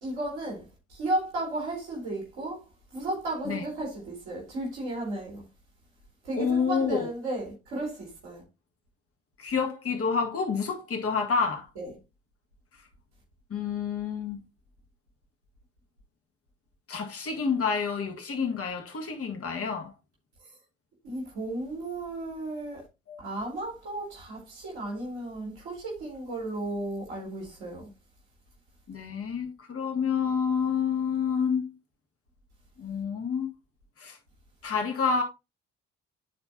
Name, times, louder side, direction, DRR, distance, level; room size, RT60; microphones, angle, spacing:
voice 1, 0.0-2.7 2.9-5.4 6.2-8.4 11.8-11.9 21.0-22.8 23.2-27.9, right 1 dB, 90° right, 3.1 m, -34 dB
voice 2, 6.4-7.1 9.4-11.7 13.5-14.4 16.9-19.9 23.1-23.2 28.9-31.7 32.8-33.5 34.0-34.2 34.6-35.2, left 6 dB, 40° left, 2.0 m, -28 dB
12.0 x 4.4 x 2.8 m
hypercardioid pair, 45°, 34 cm